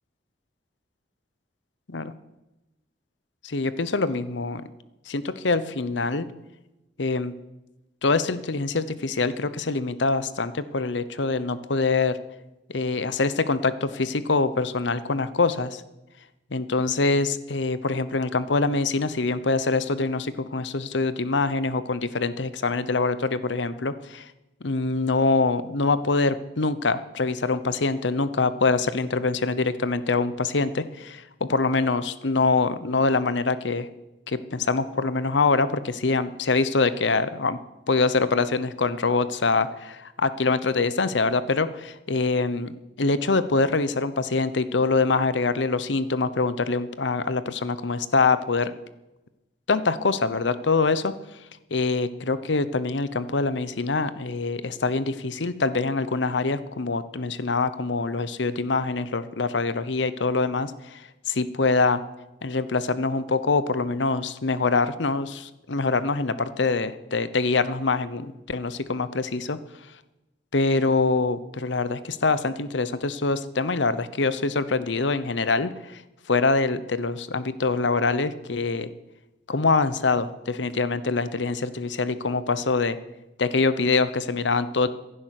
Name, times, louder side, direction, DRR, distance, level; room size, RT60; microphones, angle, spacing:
voice 1, 3.4-4.6 5.1-6.3 7.0-7.3 8.0-12.2 12.7-15.8 16.5-24.3 24.6-33.9 34.3-37.6 37.9-48.7 49.7-51.1 51.7-61.0 61.3-62.0 62.4-69.6 70.5-76.0 76.3-78.9 79.5-83.0 83.4-84.9, left 3 dB, 80° left, 14 dB, 0.9 m, -24 dB
16.0 x 11.0 x 6.6 m, 0.99 s
head